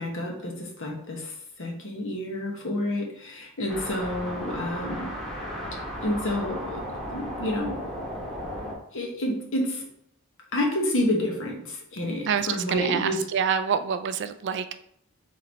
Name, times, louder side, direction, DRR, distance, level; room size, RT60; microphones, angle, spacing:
voice 1, 0.0-5.1 6.0-6.8 7.1-7.9 8.9-9.8 10.5-13.2, left 1 dB, 60° left, 1 dB, 1.0 m, -29 dB
sound 1, 3.7-8.7, equal, ahead, 1.2 m, -35 dB
voice 2, 12.3-14.7, right 7 dB, 50° right, 10 dB, 0.3 m, -27 dB
3.9 x 3.2 x 3.9 m, 0.74 s
head